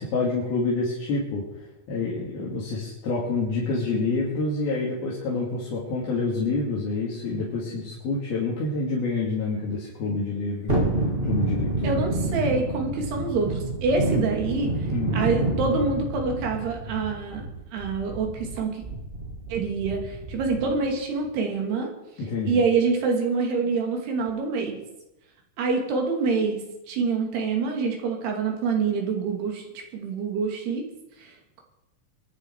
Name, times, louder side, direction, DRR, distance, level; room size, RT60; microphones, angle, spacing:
voice 1, 0.0-10.8 11.3-12.0 14.9-15.2 22.2-22.6, left 3 dB, 70° left, -5 dB, 4.4 m, -27 dB
Thunderstorm, 10.7-20.9 21.2-21.3, right 2 dB, 25° right, 1.3 m, -29 dB
voice 2, 11.8-14.7 15.1-17.5 17.7-18.8 19.5-21.9 22.5-24.8 25.6-29.6 29.9-30.8 31.2-31.6, right 4 dB, 80° right, 2 dB, 4.6 m, -26 dB
23.5 x 10.5 x 4.7 m, 0.90 s
omnidirectional pair, 4.6 m